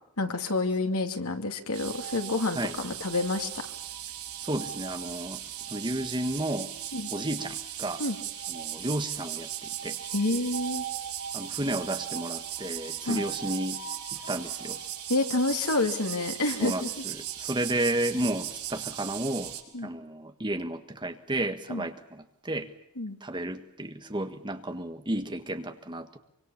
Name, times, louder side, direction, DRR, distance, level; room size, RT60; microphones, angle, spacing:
voice 1, 0.2-3.7 6.9-7.1 8.0-8.2 10.1-10.8 13.0-13.3 15.1-17.0 19.7-19.9 21.7-21.9 23.0-23.2, left 2 dB, 85° left, 6 dB, 2.6 m, -28 dB
sound 1, 1.7-19.6, right 10 dB, 85° right, 4.9 m, -37 dB
voice 2, 4.4-6.7 7.1-8.0 8.5-10.0 11.3-13.8 14.1-14.8 16.6-16.8 17.1-19.6 19.8-22.7 23.2-26.2, right 1 dB, 20° right, 7 dB, 1.5 m, -32 dB
25.0 x 25.0 x 7.2 m, 0.79 s
head